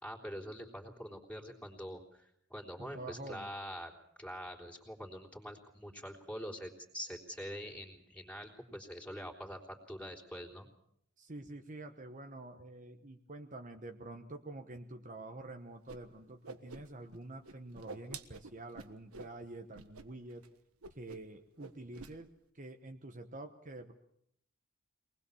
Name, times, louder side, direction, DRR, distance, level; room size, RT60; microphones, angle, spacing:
voice 1, 0.0-3.9 4.2-10.7, equal, 5° left, 0 dB, 3.5 m, -45 dB
voice 2, 2.8-3.5 11.2-20.4 20.9-23.9, right 2 dB, 35° right, 5 dB, 1.1 m, -47 dB
Whoosh swoosh swish, 15.9-16.0 16.3-17.2 17.4-19.3 19.7-20.1 20.3-20.5 20.8-21.3 21.6-22.1, right 4 dB, 90° right, 1.5 m, -48 dB
23.5 x 20.0 x 7.1 m, 0.72 s
head